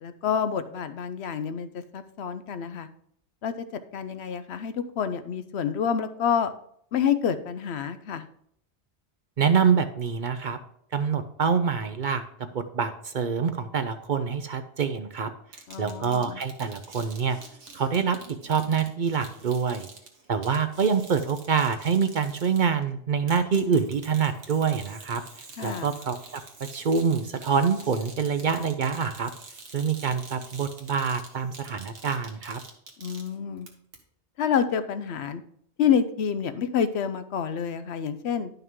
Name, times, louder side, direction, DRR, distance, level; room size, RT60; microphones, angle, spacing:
voice 1, 0.0-2.9 3.4-6.5 6.9-8.2 15.7-16.4 25.6-25.9 33.0-33.7 34.4-35.4 35.8-38.5, left 7 dB, 75° left, 11 dB, 0.9 m, -28 dB
voice 2, 9.4-10.6 10.9-12.2 12.5-15.3 15.8-17.4 17.7-18.2 18.4-19.9 20.3-25.2 25.6-26.4 26.7-29.3 29.7-32.6, right 6 dB, 55° right, 9 dB, 0.6 m, -26 dB
sound 1, 15.5-22.8 23.3-33.7 33.9-34.0, right 3 dB, 85° right, 1.6 m, -47 dB
11.0 x 5.7 x 3.6 m, 0.67 s
omnidirectional pair, 1.1 m